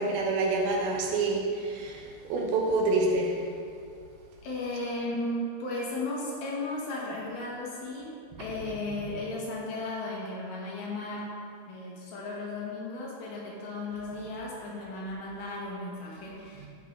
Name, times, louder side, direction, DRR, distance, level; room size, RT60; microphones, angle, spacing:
voice 1, 0.0-2.0 2.3-3.4, right 3 dB, 75° right, -1 dB, 2.8 m, -27 dB
voice 2, 4.4-11.3 11.7-16.7, left 2 dB, 75° left, -4 dB, 3.2 m, -35 dB
12.0 x 5.7 x 3.2 m, 2.3 s
omnidirectional pair, 4.5 m